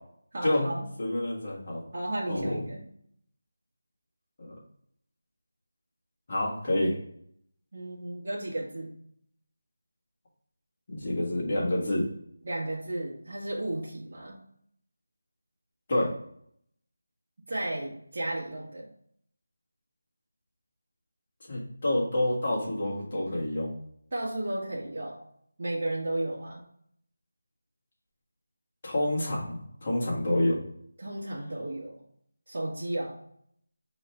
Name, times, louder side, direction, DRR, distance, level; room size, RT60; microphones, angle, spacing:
voice 1, 0.3-0.9 1.9-2.8 7.7-9.0 12.4-14.4 17.5-18.8 24.1-25.2 25.6-26.6 31.0-32.0 32.5-33.2, right 1 dB, 45° right, -6 dB, 1.2 m, -33 dB
voice 2, 1.0-1.8 2.3-2.6 4.4-4.5 6.3-7.0 10.9-12.1 15.9-16.1 21.5-23.7 28.8-30.6, left 1 dB, 35° left, -4 dB, 1.5 m, -28 dB
5.0 x 3.1 x 3.3 m, 0.67 s
figure-of-eight pair, 170°, 0 cm